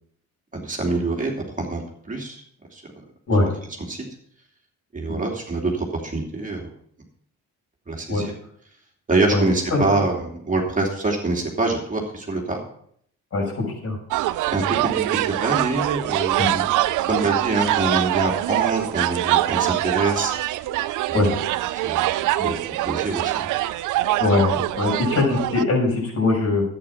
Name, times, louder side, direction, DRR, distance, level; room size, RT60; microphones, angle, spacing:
voice 1, 0.5-1.8 2.1-2.4 2.7-2.8 3.9-4.0 4.9-6.7 7.9-8.3 9.1-12.6 14.5-20.3 21.7-22.5 22.8-23.5, right 3 dB, 25° right, 0 dB, 2.8 m, -25 dB
voice 2, 9.3-9.8 13.3-14.0 16.4-16.5 21.1-21.3 22.4-22.5 24.2-26.6, left 2 dB, 50° left, -2 dB, 6.4 m, -21 dB
sound 1, 14.1-25.6, right 15 dB, 85° right, 0.5 m, -24 dB
11.0 x 9.2 x 5.8 m, 0.66 s
cardioid pair, 90°, 30 cm